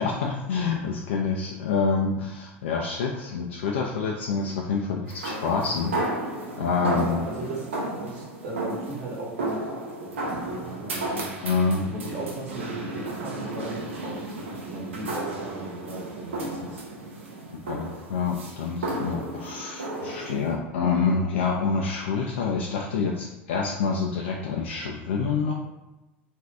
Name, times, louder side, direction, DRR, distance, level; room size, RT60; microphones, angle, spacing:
voice 1, 0.0-5.9 6.6-7.2 11.4-11.8 17.7-25.5, left 5 dB, 80° left, -1 dB, 0.4 m, -27 dB
sound 1, 5.1-20.5, right 2 dB, 90° right, 0.6 m, -33 dB
voice 2, 6.7-11.3 11.9-16.8 17.1-17.6, right 2 dB, 60° right, -5 dB, 1.0 m, -37 dB
2.6 x 2.3 x 3.4 m, 1.0 s
hypercardioid pair, 80°, 6 cm